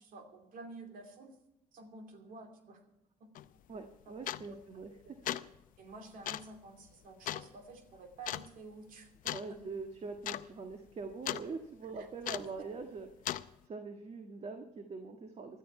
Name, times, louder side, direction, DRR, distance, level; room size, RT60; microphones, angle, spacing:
voice 1, 0.0-1.3 1.7-2.8 3.2-3.3 4.1-4.2 4.5-4.6 5.0-5.3 5.8-9.1 9.5-9.6 12.0-12.1 12.4-12.5, right 3 dB, 70° right, 5 dB, 2.7 m, -51 dB
sound 1, 3.4-3.5 4.3-4.6 5.1-5.5 6.3-6.5 7.3-7.5 8.3-8.5 9.3-9.5 9.8-9.9 10.2-10.5 10.7-11.5 12.3-12.6 13.3-13.5, left 13 dB, 70° left, 0.6 m, -37 dB
voice 2, 3.7-4.9 9.3-13.1 13.6-15.6, right 4 dB, 45° right, 5 dB, 1.5 m, -43 dB
16.5 x 12.0 x 4.4 m, 0.90 s
cardioid pair, 80°, 15 cm